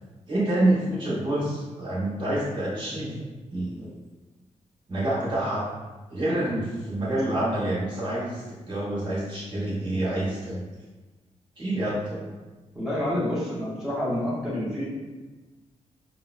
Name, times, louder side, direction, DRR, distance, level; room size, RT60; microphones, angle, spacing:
voice 1, 0.3-3.2 3.5-3.9 4.9-5.6 6.1-10.6 11.6-12.2, right 1 dB, 40° right, -7 dB, 1.1 m, -27 dB
voice 2, 12.7-14.8, left 1 dB, 5° right, -10 dB, 0.7 m, -28 dB
5.1 x 2.0 x 2.4 m, 1.2 s
wide cardioid pair, 175°, 12 cm